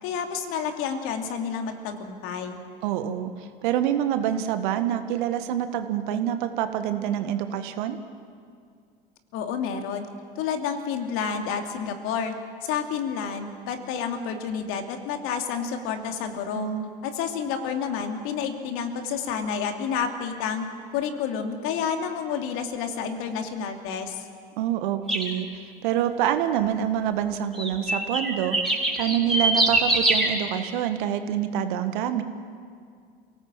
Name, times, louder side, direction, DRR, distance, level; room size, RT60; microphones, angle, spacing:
voice 1, 0.0-2.6 9.3-10.1 10.4-12.3 12.6-16.7 17.0-20.6 20.9-24.3, left 7 dB, 45° left, 5 dB, 2.8 m, -29 dB
voice 2, 2.8-3.3 3.6-8.0 16.5-16.9 24.6-25.5 25.8-28.6 29.0-32.2, right 10 dB, 55° right, 9 dB, 1.6 m, -26 dB
sound 1, 25.1-25.3 27.5-30.3, right 2 dB, ahead, 5.3 m, -23 dB
28.5 x 18.0 x 7.6 m, 2.2 s
figure-of-eight pair, 80°, 29 cm